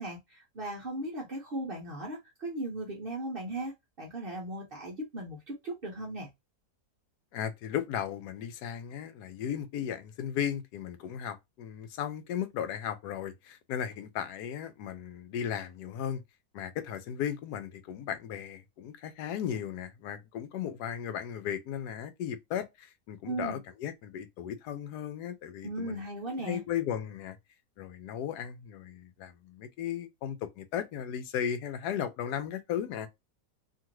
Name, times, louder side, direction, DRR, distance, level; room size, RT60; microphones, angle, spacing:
voice 1, 0.0-3.7 4.0-6.3 23.2-23.6 25.6-26.6, right 1 dB, 50° right, 0.7 m, -37 dB
voice 2, 7.3-16.2 16.5-26.0 26.3-27.4 27.8-33.1, left 9 dB, 80° left, 1.1 m, -36 dB
2.8 x 2.4 x 3.0 m
omnidirectional pair, 1.7 m